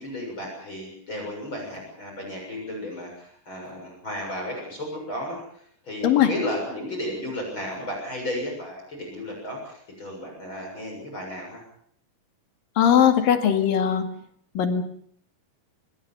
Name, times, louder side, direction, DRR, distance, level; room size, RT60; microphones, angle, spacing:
voice 1, 0.0-11.6, left 1 dB, 30° left, 1 dB, 7.5 m, -34 dB
voice 2, 12.8-14.1 14.6-14.8, left 9 dB, 65° left, 7 dB, 3.7 m, -19 dB
24.5 x 20.5 x 7.1 m, 0.64 s
omnidirectional pair, 4.6 m